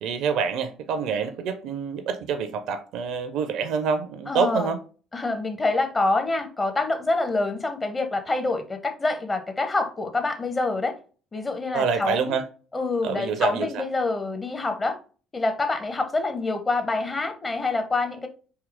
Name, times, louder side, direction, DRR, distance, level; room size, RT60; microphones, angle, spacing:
voice 1, 0.0-4.8 11.7-12.4 13.0-13.8, right 6 dB, 60° right, 0.4 m, -26 dB
voice 2, 4.3-4.7 5.1-11.0 11.3-12.4 12.7-15.0 15.3-18.3, left 3 dB, 25° left, 0.7 m, -26 dB
3.7 x 2.8 x 3.4 m
figure-of-eight pair, 50°, 0 cm